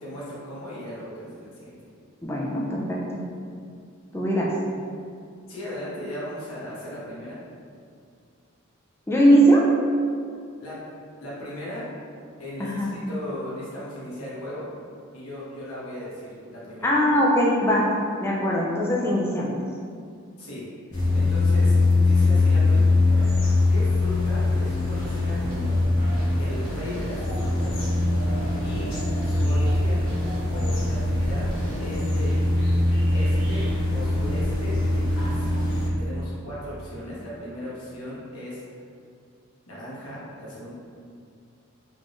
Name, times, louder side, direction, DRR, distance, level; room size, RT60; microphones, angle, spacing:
voice 1, 0.0-1.8 5.5-7.4 10.6-10.9 11.2-11.9 12.4-14.7 15.1-17.0 20.4-20.7 21.1-23.3 23.7-25.8 26.4-27.9 28.2-28.9 29.2-30.1 30.5-31.5 31.8-32.4 33.1-35.7 36.0-38.6 39.7-40.7, left 1 dB, 80° left, -8 dB, 1.2 m, -37 dB
voice 2, 2.2-3.3 4.1-4.5 9.1-9.7 12.6-12.9 16.8-17.9 18.2-19.6, equal, 10° left, -4 dB, 0.4 m, -21 dB
sound 1, 20.9-35.9, left 2 dB, 55° left, 1.4 m, -22 dB
sound 2, 24.9-25.2 25.5-31.8, equal, 70° right, 1.3 m, -38 dB
3.5 x 3.2 x 2.5 m, 2.2 s
head